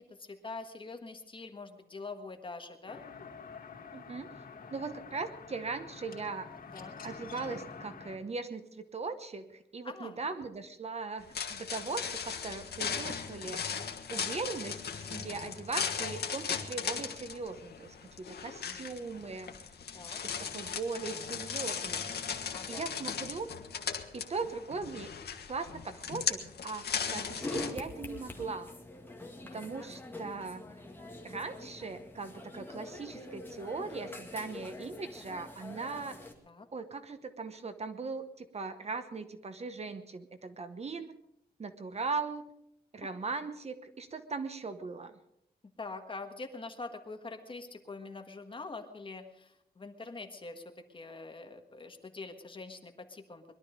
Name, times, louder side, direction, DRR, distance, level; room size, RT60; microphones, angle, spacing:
voice 1, 0.1-3.0 6.7-7.0 9.8-10.2 18.6-19.4 19.9-20.2 22.5-22.9 29.5-30.0 36.4-36.7 45.8-53.4, left 3 dB, 30° left, 5 dB, 1.6 m, -45 dB
sound 1, 2.9-8.2, left 5 dB, 60° left, 2.9 m, -47 dB
voice 2, 3.9-4.3 4.7-6.5 7.0-13.7 14.1-17.9 18.3-19.5 20.1-22.1 22.7-23.5 24.1-25.1 25.5-28.7 29.5-30.6 31.2-36.2 36.7-41.1 41.6-42.5 42.9-45.2, right 4 dB, 40° right, 9 dB, 1.0 m, -39 dB
sound 2, 11.2-27.7, left 7 dB, 75° left, 1.4 m, -37 dB
sound 3, 27.4-36.3, left 2 dB, 10° left, 2.0 m, -44 dB
21.5 x 12.0 x 5.1 m, 0.77 s
wide cardioid pair, 170°, 17 cm